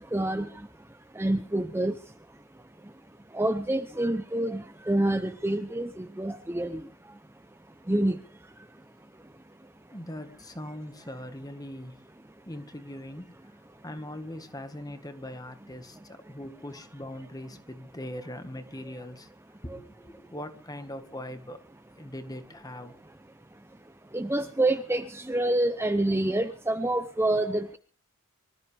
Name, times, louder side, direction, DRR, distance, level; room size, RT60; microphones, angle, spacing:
voice 1, 0.1-0.5 1.2-1.9 3.3-6.8 7.9-8.2 24.1-27.8, right 1 dB, 10° right, 0.8 m, -27 dB
voice 2, 9.9-12.0 12.4-13.6 13.8-19.3 19.6-21.6 22.0-22.9, left 1 dB, 15° left, 1.7 m, -41 dB
25.0 x 14.5 x 3.5 m
head